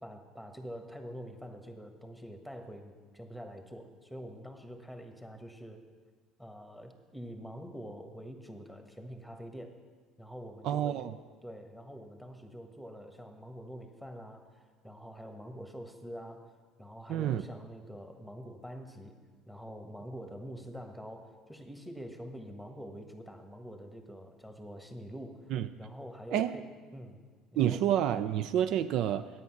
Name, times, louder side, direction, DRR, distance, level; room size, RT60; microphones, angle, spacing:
voice 1, 0.0-5.8 6.4-9.8 10.2-11.1 11.4-16.5 16.8-19.2 19.5-25.5 25.8-27.2 27.5-27.9, equal, ahead, 5 dB, 1.4 m, -46 dB
voice 2, 10.6-11.1 17.1-17.4 25.5-25.7 26.3-26.6 27.6-29.3, right 11 dB, 65° right, 12 dB, 0.3 m, -29 dB
9.3 x 8.7 x 5.9 m, 1.5 s
supercardioid pair, 80°, 0 cm